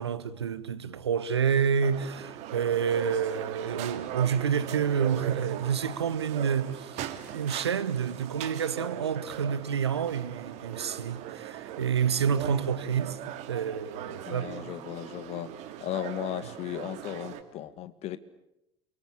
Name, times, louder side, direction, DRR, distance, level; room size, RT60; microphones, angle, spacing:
voice 1, 0.0-14.7, right 7 dB, 85° right, 1.2 m, -29 dB
sound 1, 1.8-17.4, right 12 dB, 55° right, 2.6 m, -40 dB
voice 2, 14.3-15.5 15.8-18.2, left 12 dB, 50° left, 1.9 m, -36 dB
28.5 x 23.5 x 8.6 m
figure-of-eight pair, 65°, 14 cm